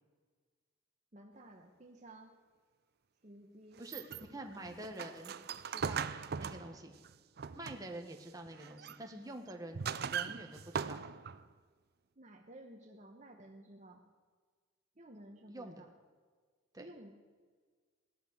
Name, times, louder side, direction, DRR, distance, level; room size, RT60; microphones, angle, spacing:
voice 1, 1.1-2.3 3.2-3.8 12.2-14.0 15.0-15.9 16.8-17.1, right 1 dB, 35° right, 2 dB, 1.1 m, -54 dB
sound 1, 3.8-8.0 8.5-9.0 9.5-11.5, right 6 dB, 50° right, 0.5 m, -40 dB
voice 2, 4.3-5.4 5.6-6.9 7.5-11.0 15.5-15.8 16.7-16.9, right 1 dB, 20° right, 3 dB, 1.4 m, -47 dB
16.5 x 11.5 x 6.5 m, 1.5 s
head